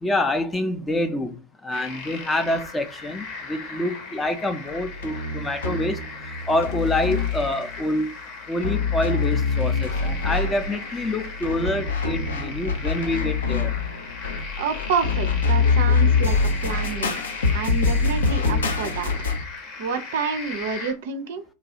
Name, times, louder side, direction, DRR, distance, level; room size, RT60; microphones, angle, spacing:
voice 1, 0.0-6.0 6.5-8.1 8.5-13.7, left 1 dB, 10° left, 0.5 m, -26 dB
sound 1, 1.7-20.9, left 4 dB, 40° left, 0.8 m, -37 dB
sound 2, 4.7-7.8 8.6-19.4, left 4 dB, 70° left, 0.6 m, -24 dB
voice 2, 14.6-17.2 17.5-19.1 19.8-21.4, right 6 dB, 55° right, 0.4 m, -28 dB
3.0 x 2.3 x 2.7 m
figure-of-eight pair, 90°, 0 cm